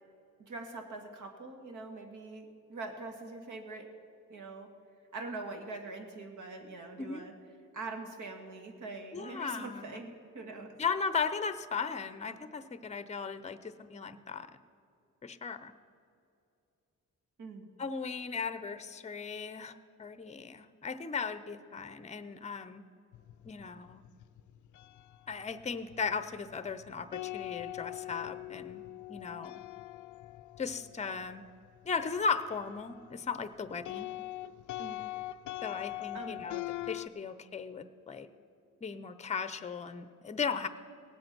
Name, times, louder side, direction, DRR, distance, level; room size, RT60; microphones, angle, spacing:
voice 1, 0.4-3.9 4.3-4.7 5.1-7.3 7.7-10.8 17.4-17.7 34.8-35.1 36.1-36.5, right 3 dB, 75° right, 4 dB, 1.9 m, -43 dB
voice 2, 9.1-10.0 10.8-14.5 15.2-15.7 17.8-19.7 20.0-22.8 23.4-24.0 25.3-28.8 29.1-29.6 30.6-31.4 31.8-34.1 35.6-38.3 38.8-40.7, left 5 dB, 20° left, 12 dB, 0.6 m, -37 dB
sound 1, 23.1-33.3 33.5-37.1, left 17 dB, 75° left, 0.4 m, -43 dB
18.0 x 7.9 x 6.0 m, 2.6 s
cardioid pair, 100°, 31 cm